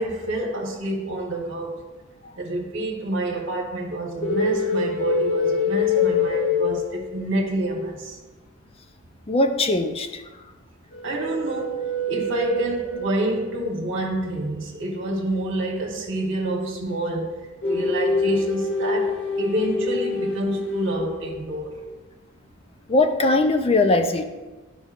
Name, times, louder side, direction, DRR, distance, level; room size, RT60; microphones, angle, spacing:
voice 1, 0.0-1.8 2.4-8.2 11.0-17.3 17.7-21.7, right 1 dB, 70° right, -1 dB, 1.1 m, -28 dB
sound 1, 4.2-7.4 10.9-13.5 17.6-21.4, left 3 dB, 65° left, 1.9 m, -25 dB
voice 2, 9.3-10.2 22.9-24.2, left 2 dB, 30° left, 7 dB, 0.5 m, -20 dB
11.5 x 5.4 x 2.4 m, 1.2 s
head